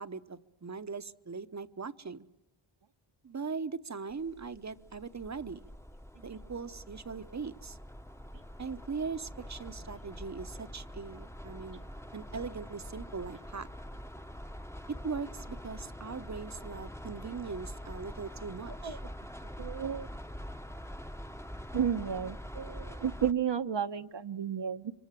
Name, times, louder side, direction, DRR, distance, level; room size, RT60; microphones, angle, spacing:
voice 1, 0.0-2.3 3.2-5.7 6.2-7.8 8.6-11.8 12.1-13.7 14.9-19.0, right 5 dB, 35° right, 13 dB, 0.9 m, -40 dB
sound 1, 4.1-23.3, equal, 5° left, 0.9 m, -45 dB
voice 2, 19.6-20.1 21.7-24.9, right 8 dB, 60° right, 10 dB, 0.9 m, -32 dB
25.0 x 25.0 x 7.5 m, 1.0 s
wide cardioid pair, 80°, 50 cm